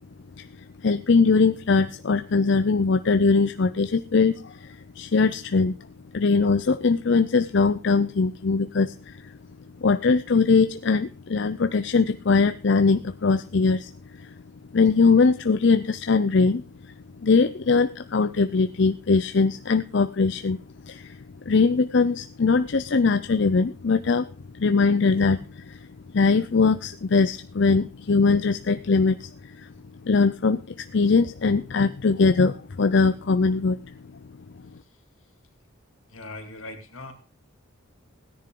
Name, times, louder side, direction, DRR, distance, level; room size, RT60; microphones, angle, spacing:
voice 1, 0.8-5.8 6.1-9.3 9.8-14.3 14.7-16.6 17.2-20.6 20.8-21.2 21.5-24.3 24.5-25.9 26.1-29.7 30.0-33.9, left 4 dB, 55° left, 11 dB, 0.5 m, -21 dB
voice 2, 36.1-37.1, left 2 dB, 75° left, 5 dB, 2.6 m, -39 dB
16.5 x 10.5 x 3.8 m, 0.37 s
head